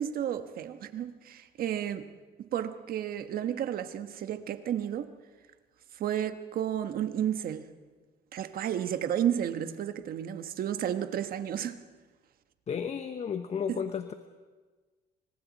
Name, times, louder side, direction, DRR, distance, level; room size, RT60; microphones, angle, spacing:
voice 1, 0.0-2.1 2.4-5.1 5.9-7.7 8.3-11.8 13.7-13.8, right 10 dB, 60° right, 1.4 m, -32 dB
voice 2, 12.7-14.1, left 7 dB, 40° left, 1.1 m, -33 dB
28.0 x 25.0 x 4.2 m
cardioid pair, 110°, 17 cm